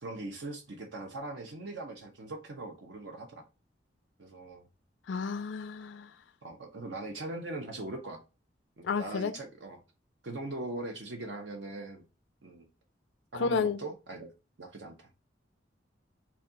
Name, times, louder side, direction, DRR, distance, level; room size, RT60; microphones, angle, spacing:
voice 1, 0.0-3.5 4.2-4.7 6.4-8.2 8.8-9.8 10.2-12.0 12.4-12.7 13.3-14.3 14.6-15.1, right 2 dB, 75° right, 0.8 m, -40 dB
voice 2, 5.1-6.1 8.8-9.3 13.4-13.8, left 5 dB, 75° left, 0.4 m, -31 dB
4.0 x 2.3 x 3.8 m
head